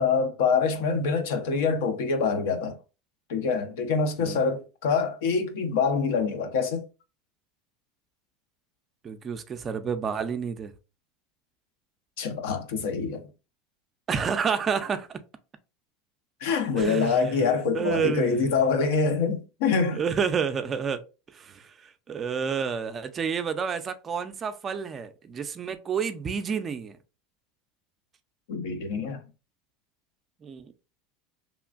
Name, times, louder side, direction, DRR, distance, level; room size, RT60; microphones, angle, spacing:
voice 1, 0.0-2.8 3.3-6.9 12.2-13.3 16.4-20.0 28.5-29.2, left 5 dB, 75° left, 0.6 m, -25 dB
voice 2, 9.0-10.7 14.1-15.2 16.7-17.5 17.7-18.5 19.9-21.0 21.3-27.0 30.4-30.7, right 6 dB, 30° right, 0.4 m, -29 dB
2.9 x 2.4 x 2.4 m
supercardioid pair, 110°, 0 cm